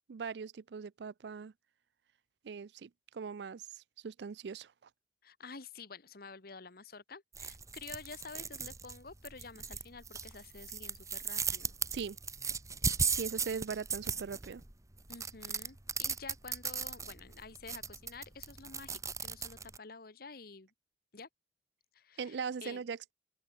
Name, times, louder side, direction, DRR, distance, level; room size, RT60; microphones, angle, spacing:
voice 1, 0.0-1.5 2.4-4.9 11.9-12.2 13.1-14.6 22.2-23.1, right 6 dB, 70° right, 0.4 m, -40 dB
voice 2, 5.2-11.7 13.1-13.2 15.1-20.7 21.1-21.3 21.9-22.8, left 4 dB, 60° left, 1.4 m, -50 dB
sound 1, 7.3-19.8, right 5 dB, 20° right, 1.0 m, -38 dB
open air
head